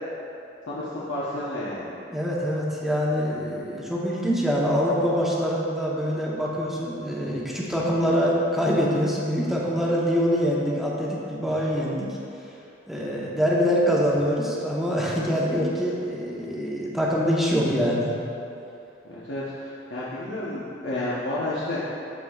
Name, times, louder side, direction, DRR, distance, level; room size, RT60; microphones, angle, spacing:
voice 1, 0.7-1.9 19.1-21.9, left 1 dB, 75° left, -9 dB, 0.9 m, -31 dB
voice 2, 2.1-12.2 12.9-18.1, equal, ahead, -5 dB, 0.9 m, -24 dB
12.5 x 4.4 x 2.4 m, 2.7 s
head